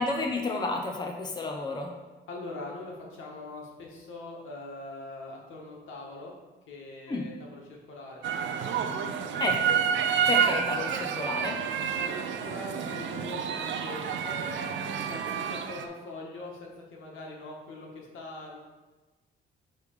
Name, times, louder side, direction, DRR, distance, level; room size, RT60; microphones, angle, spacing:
voice 1, 0.0-1.9 7.1-7.2 9.4-9.8 10.3-11.6, left 3 dB, 20° left, 1 dB, 0.8 m, -31 dB
voice 2, 2.3-6.3 6.7-9.4 12.0-18.6, left 2 dB, 80° left, -1 dB, 1.5 m, -42 dB
sound 1, 8.2-15.9, right 7 dB, 70° right, 0.6 m, -29 dB
6.8 x 3.4 x 5.1 m, 1.2 s
cardioid pair, 90°, 20 cm